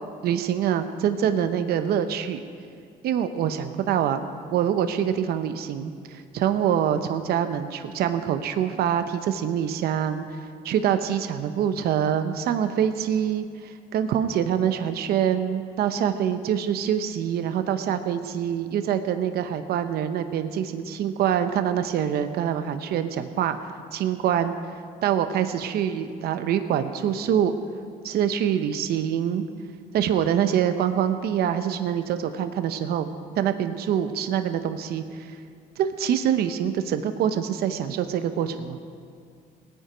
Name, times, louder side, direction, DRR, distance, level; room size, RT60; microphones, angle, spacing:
voice 1, 0.2-2.4 3.0-4.3 4.5-23.6 23.9-24.5 25.0-27.5 28.0-29.5 29.9-33.1 33.4-35.4 35.8-38.8, right 9 dB, 70° right, 9 dB, 0.8 m, -25 dB
19.0 x 9.1 x 5.1 m, 2.3 s
cardioid pair, 110°, 17 cm